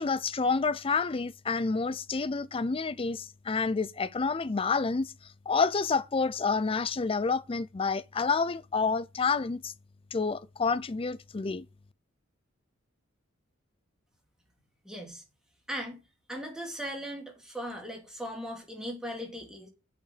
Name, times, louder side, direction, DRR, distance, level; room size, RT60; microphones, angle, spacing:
voice 1, 0.0-5.1 5.5-9.7 10.1-11.7, left 4 dB, 30° left, 0.5 m, -29 dB
voice 2, 14.8-15.2 15.7-16.0 16.3-19.7, equal, 5° right, 2.6 m, -38 dB
7.7 x 5.1 x 6.8 m
head